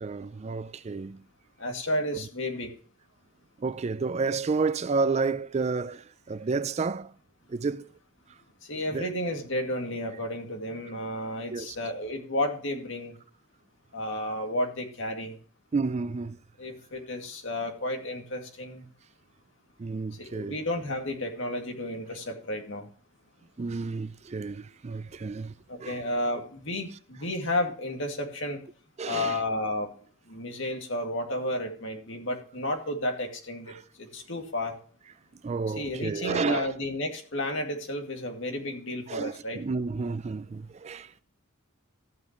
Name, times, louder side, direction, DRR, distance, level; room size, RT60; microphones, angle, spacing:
voice 1, 0.0-1.2 3.6-7.1 7.5-7.9 8.9-9.1 11.5-11.8 15.7-16.4 19.8-20.6 23.6-25.5 25.8-26.0 29.0-29.4 33.7-33.8 35.4-36.7 39.1-41.2, right 4 dB, 30° right, 0.4 m, -30 dB
voice 2, 1.6-2.7 8.7-13.2 13.9-15.3 16.6-18.8 20.2-22.9 25.7-28.6 29.0-29.9 30.3-34.8 35.8-39.6, left 1 dB, 65° left, 2.3 m, -32 dB
14.0 x 8.4 x 3.0 m
head